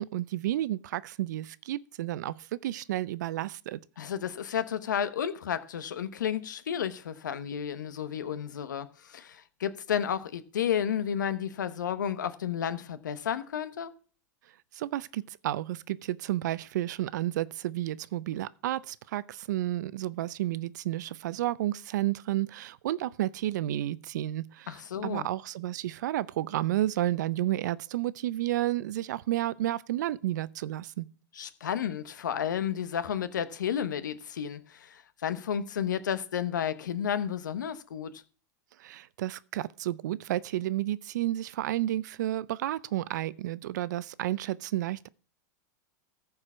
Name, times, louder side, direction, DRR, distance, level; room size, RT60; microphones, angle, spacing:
voice 1, 0.0-2.3 2.6-3.8 14.8-31.1 38.8-45.1, right 14 dB, 75° right, 0.6 m, -31 dB
voice 2, 4.0-13.9 24.7-25.3 31.3-38.2, left 8 dB, 90° left, 1.0 m, -32 dB
14.5 x 4.8 x 6.1 m
hypercardioid pair, 115°, 10 cm